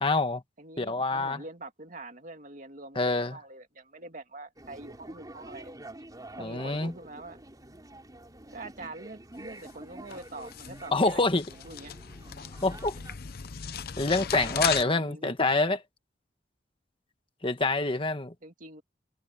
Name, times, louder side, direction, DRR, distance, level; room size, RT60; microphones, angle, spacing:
voice 1, 0.0-0.4 0.8-1.4 3.0-3.3 6.4-6.9 10.9-11.4 12.6-13.0 14.0-15.8 17.4-18.3, left 2 dB, 30° left, 1.4 m, -26 dB
voice 2, 0.6-3.0 3.3-5.7 6.4-7.4 8.5-11.9 14.2-15.7 18.4-18.8, right 2 dB, 50° right, 2.5 m, -44 dB
sound 1, 4.6-13.1, right 1 dB, 20° right, 4.2 m, -47 dB
sound 2, 9.4-14.8, left 8 dB, 55° left, 0.7 m, -36 dB
head